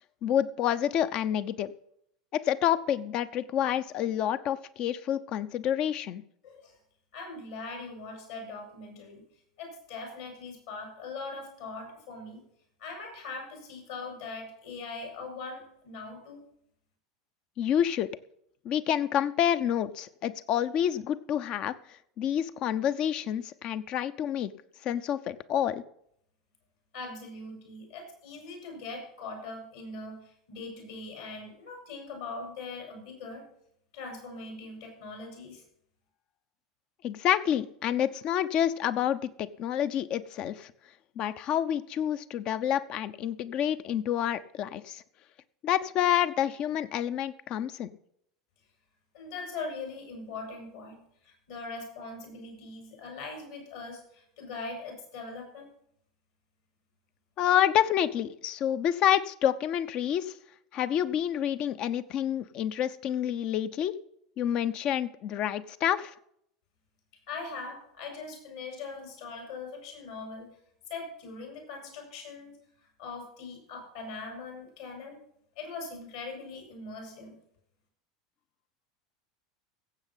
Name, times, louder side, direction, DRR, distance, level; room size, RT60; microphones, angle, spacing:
voice 1, 0.2-1.7 2.3-6.2 17.6-18.1 18.6-21.7 22.2-24.5 24.8-25.8 37.0-40.7 41.2-45.0 45.6-47.9 57.4-60.3 60.7-63.9 64.4-66.1, left 10 dB, 45° left, 14 dB, 0.8 m, -28 dB
voice 2, 6.4-6.7 7.1-9.2 9.6-12.4 12.8-16.4 26.9-33.4 33.9-35.6 49.1-55.7 67.3-70.5 70.9-72.5 73.0-75.2 75.6-77.4, left 3 dB, 65° left, 2 dB, 6.2 m, -41 dB
15.5 x 8.0 x 5.7 m, 0.71 s
figure-of-eight pair, 80°, 2 cm